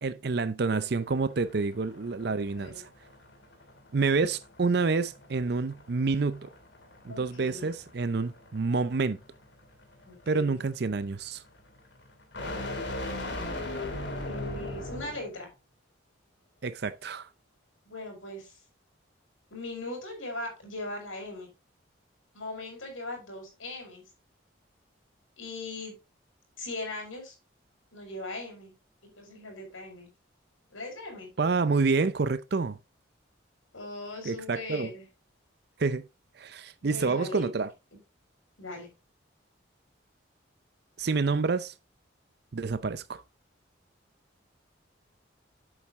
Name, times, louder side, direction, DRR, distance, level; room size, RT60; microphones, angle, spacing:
voice 1, 0.0-2.9 3.9-6.5 7.0-9.2 10.3-11.4 16.6-17.3 31.4-32.8 34.2-34.9 35.8-36.0 36.4-37.7 41.0-41.7 42.5-43.2, right 4 dB, 55° right, 0.5 m, -28 dB
sound 1, 0.8-15.3, left 1 dB, 65° left, 2.5 m, -40 dB
voice 2, 2.5-2.8 7.1-7.7 10.0-10.7 14.3-15.5 17.8-18.5 19.5-21.5 22.3-24.0 25.4-26.0 26.6-27.3 27.9-28.7 29.0-30.1 30.7-31.3 33.7-35.1 36.8-37.5 38.6-38.9, left 2 dB, 85° left, 4.6 m, -39 dB
8.1 x 7.3 x 3.5 m
head